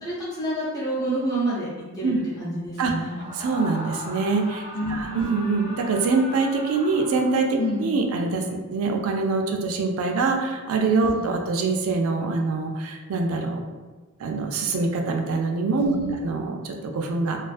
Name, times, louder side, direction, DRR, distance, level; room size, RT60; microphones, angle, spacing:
voice 1, 0.0-3.2 4.7-5.3 7.6-7.8 11.1-11.3 15.8-16.2, equal, 15° left, -8 dB, 0.4 m, -29 dB
Screaming, 3.0-7.9, equal, 70° left, 0.6 m, -39 dB
voice 2, 3.4-4.6 4.9-13.6 14.2-16.0 16.2-17.4, right 3 dB, 65° right, 3 dB, 0.3 m, -24 dB
2.3 x 2.3 x 2.4 m, 1.3 s
head